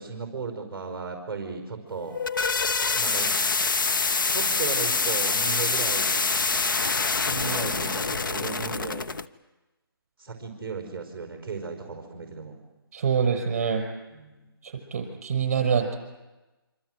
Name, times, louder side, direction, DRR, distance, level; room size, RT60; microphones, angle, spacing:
voice 1, 0.0-2.2 2.9-3.3 4.3-6.1 7.2-9.1 10.2-12.6 14.1-14.5, right 5 dB, 5° right, -1 dB, 4.2 m, -35 dB
sound 1, 1.9-9.2, left 4 dB, 55° left, 0.9 m, -25 dB
voice 2, 12.9-13.8 14.9-16.0, right 6 dB, 35° right, 5 dB, 6.0 m, -25 dB
26.5 x 25.5 x 7.7 m, 1.1 s
hypercardioid pair, 170°, 13 cm